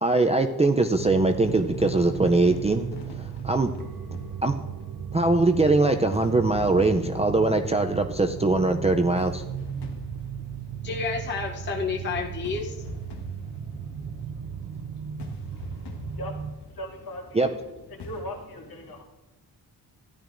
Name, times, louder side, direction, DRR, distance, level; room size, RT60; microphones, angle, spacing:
voice 1, 0.0-3.7 4.4-4.6 5.1-9.4 17.3-17.5, right 2 dB, 15° right, 4 dB, 0.4 m, -22 dB
sound 1, 0.9-16.5, right 7 dB, 55° right, 0.6 m, -36 dB
sound 2, 1.4-5.3 6.1-18.2, left 3 dB, 80° left, 1.4 m, -44 dB
voice 2, 10.5-13.4 13.6-14.7 15.1-15.5 15.9-16.2, left 4 dB, 25° left, 0 dB, 0.7 m, -34 dB
voice 3, 16.7-17.5 17.9-19.0, equal, 60° left, 0 dB, 2.3 m, -38 dB
14.0 x 11.0 x 2.5 m, 1.0 s
wide cardioid pair, 135°, 40 cm